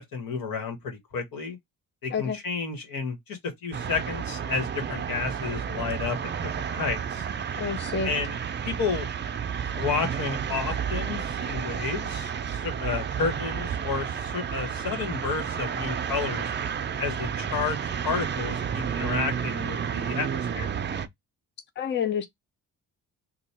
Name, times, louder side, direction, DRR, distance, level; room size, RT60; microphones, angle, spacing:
voice 1, 0.0-1.6 2.0-7.3 8.0-8.3 8.6-9.1 9.8-16.5 17.0-20.8, left 5 dB, 80° left, 1.5 m, -31 dB
sound 1, 3.7-21.1, right 7 dB, 30° right, 0.4 m, -31 dB
voice 2, 7.6-8.1 21.8-22.3, left 7 dB, 30° left, 0.5 m, -28 dB
2.9 x 2.3 x 4.2 m
cardioid pair, 95°, 34 cm